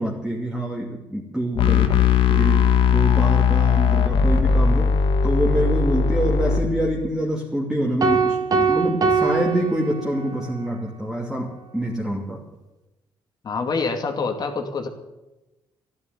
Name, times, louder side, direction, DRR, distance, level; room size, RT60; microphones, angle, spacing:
voice 1, 0.0-1.9 2.3-4.9 5.2-12.4, right 1 dB, 5° right, -3 dB, 2.8 m, -26 dB
sound 1, 1.6-6.6, left 6 dB, 80° left, 1.8 m, -18 dB
sound 2, 8.0-10.5, right 5 dB, 45° right, 1.6 m, -22 dB
voice 2, 13.4-14.9, left 4 dB, 50° left, 4 dB, 2.5 m, -26 dB
12.5 x 11.5 x 9.5 m, 1.0 s
cardioid pair, 75°, 9 cm